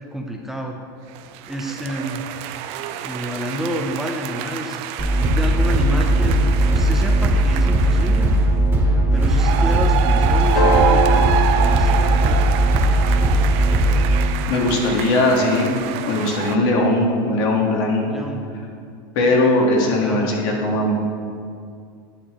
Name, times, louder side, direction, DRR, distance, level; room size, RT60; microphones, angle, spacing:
voice 1, 0.1-0.8 1.5-2.2 3.0-4.8 5.2-8.3 9.1-11.3 11.6-12.5 18.1-18.4 19.8-20.3, equal, 5° right, 1 dB, 0.6 m, -29 dB
sound 1, 1.1-8.5 9.2-16.6, right 9 dB, 55° right, 0.5 m, -27 dB
sound 2, 5.0-14.2, right 1 dB, 20° right, 1.7 m, -18 dB
sound 3, 10.5-13.1 15.3-15.4, left 1 dB, 80° left, 1.2 m, -25 dB
voice 2, 14.5-18.2 19.2-20.9, left 2 dB, 65° left, -1 dB, 1.9 m, -19 dB
9.9 x 6.7 x 3.7 m, 2.3 s
supercardioid pair, 125°, 12 cm